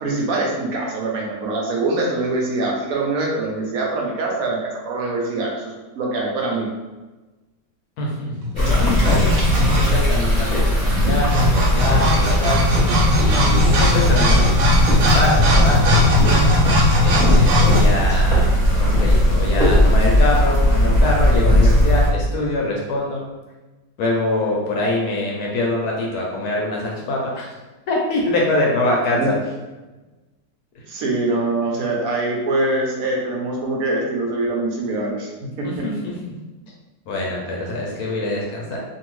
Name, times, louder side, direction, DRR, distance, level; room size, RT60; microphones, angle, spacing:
voice 1, 0.0-6.7 29.2-29.3 30.9-35.9, right 2 dB, 65° right, -1 dB, 1.0 m, -24 dB
voice 2, 8.0-12.6 13.1-14.6 14.9-16.5 17.0-23.2 24.0-27.5 27.9-29.3 35.6-36.1 37.1-38.8, left 2 dB, 70° left, -2 dB, 1.0 m, -24 dB
sound 1, 8.4-10.2 10.9-17.8, left 1 dB, 85° right, 1.3 m, -19 dB
sound 2, 8.6-22.1, equal, 30° right, 1.0 m, -17 dB
2.7 x 2.6 x 3.0 m, 1.2 s
omnidirectional pair, 1.8 m